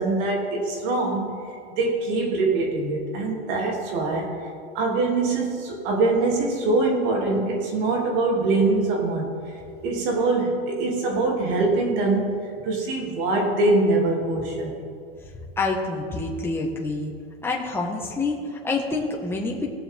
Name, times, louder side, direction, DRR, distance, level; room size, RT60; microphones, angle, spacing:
voice 1, 0.0-1.3 1.8-4.3 4.7-9.3 9.8-12.3 12.6-14.8, right 3 dB, 55° right, -1 dB, 3.3 m, -23 dB
voice 2, 15.6-17.1 17.4-19.7, left 3 dB, 5° left, -2 dB, 1.8 m, -27 dB
20.0 x 7.0 x 3.8 m, 2.3 s
supercardioid pair, 135°, 31 cm